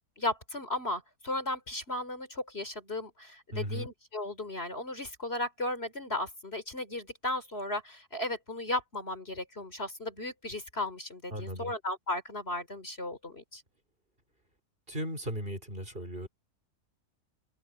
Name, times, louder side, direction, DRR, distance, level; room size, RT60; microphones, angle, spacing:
voice 1, 0.2-13.6, left 2 dB, 40° left, 3.7 m, -35 dB
voice 2, 3.5-3.9 11.3-11.7 14.9-16.3, equal, 35° right, 5.0 m, -36 dB
open air
omnidirectional pair, 1.7 m